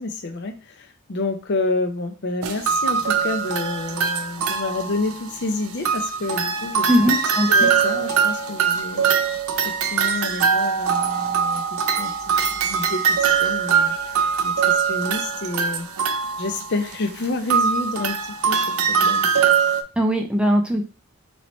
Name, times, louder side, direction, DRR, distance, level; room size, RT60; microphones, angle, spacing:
voice 1, 0.0-7.2 7.5-9.1 9.6-12.1 12.5-15.9 16.4-19.3, left 3 dB, 55° left, 6 dB, 0.6 m, -29 dB
sound 1, 2.4-5.4 5.8-19.8, right 6 dB, 85° right, 0.5 m, -22 dB
voice 2, 6.9-7.7 20.0-20.8, equal, 5° right, 4 dB, 0.4 m, -20 dB
4.1 x 3.1 x 3.0 m, 0.34 s
head